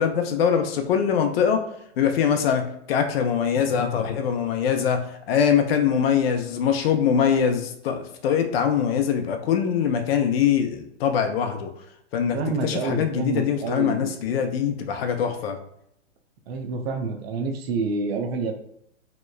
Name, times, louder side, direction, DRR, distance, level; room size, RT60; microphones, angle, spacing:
voice 1, 0.0-1.6 2.0-2.6 2.9-11.7 12.1-12.4 12.6-15.6, left 7 dB, 55° left, 6 dB, 0.5 m, -23 dB
voice 2, 12.3-14.1 16.5-18.5, right 4 dB, 55° right, 4 dB, 0.5 m, -28 dB
2.9 x 2.0 x 2.2 m, 0.72 s
hypercardioid pair, 130°, 36 cm